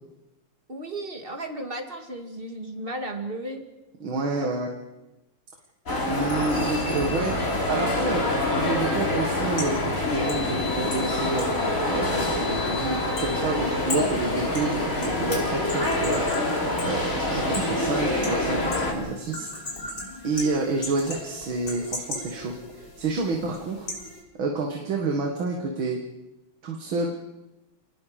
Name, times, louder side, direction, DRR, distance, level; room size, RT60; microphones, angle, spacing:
voice 1, 0.7-3.6 4.4-4.5, right 1 dB, 25° right, 4 dB, 2.4 m, -34 dB
voice 2, 4.0-4.7 6.1-8.3 8.6-11.6 11.9-19.5 20.2-23.9 24.4-26.0 26.6-27.1, right 3 dB, 75° right, 2 dB, 2.6 m, -29 dB
sound 1, 5.9-18.9, left 2 dB, 40° left, 4.1 m, -26 dB
sound 2, 8.7-24.2, left 1 dB, 60° left, 4.9 m, -38 dB
29.0 x 19.5 x 5.1 m, 0.99 s
omnidirectional pair, 2.2 m